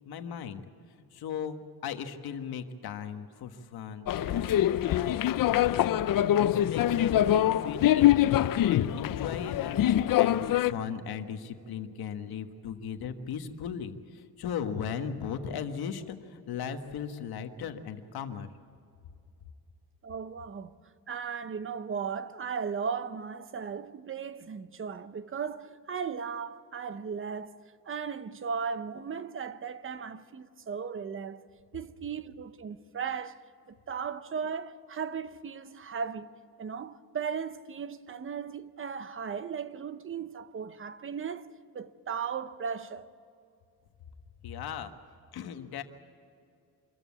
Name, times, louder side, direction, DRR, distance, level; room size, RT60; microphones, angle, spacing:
voice 1, 0.0-0.6 1.1-8.4 8.7-18.5 44.4-44.9 45.3-45.8, left 7 dB, 85° left, 1.5 m, -37 dB
sound 1, 4.1-10.7, left 12 dB, 65° left, 0.6 m, -24 dB
voice 2, 20.0-20.8 21.1-27.6 27.9-31.4 31.7-33.4 33.7-36.3 36.6-41.5 41.7-43.1, right 6 dB, 35° right, 0.8 m, -36 dB
26.0 x 14.5 x 8.4 m
cardioid pair, 145°, 36 cm